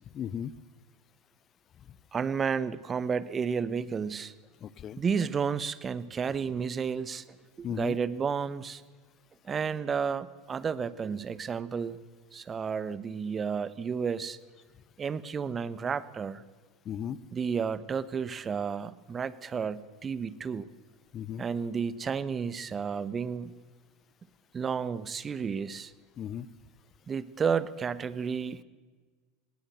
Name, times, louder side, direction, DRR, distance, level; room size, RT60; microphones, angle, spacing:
voice 1, 0.1-0.5 4.6-5.0 7.6-8.0 16.8-17.2 21.1-21.4 26.2-26.5, left 9 dB, 35° left, 21 dB, 0.9 m, -36 dB
voice 2, 2.1-4.3 5.0-7.2 7.6-8.8 9.4-12.0 12.3-14.4 15.0-16.4 17.3-20.7 21.4-23.5 24.5-25.9 27.1-28.6, right 6 dB, 25° right, 17 dB, 1.1 m, -32 dB
19.5 x 18.5 x 7.9 m, 1.4 s
hypercardioid pair, 85°, 0 cm